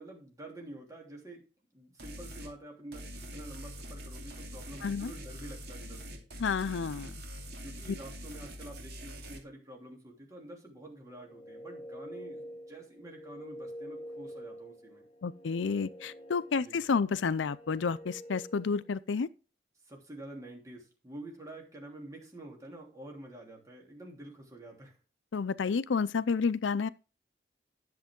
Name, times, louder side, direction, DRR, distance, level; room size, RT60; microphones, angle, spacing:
voice 1, 0.0-1.4 1.7-6.2 7.6-15.1 16.5-16.8 19.8-25.0, right 1 dB, 20° right, 2.9 m, -48 dB
sound 1, 2.0-2.5 2.9-9.4, equal, 60° right, 2.6 m, -44 dB
voice 2, 6.4-7.1 15.2-19.3 25.3-26.9, left 5 dB, 85° left, 0.5 m, -30 dB
sound 2, 11.0-18.9, equal, 35° left, 2.2 m, -47 dB
10.5 x 7.3 x 3.7 m
head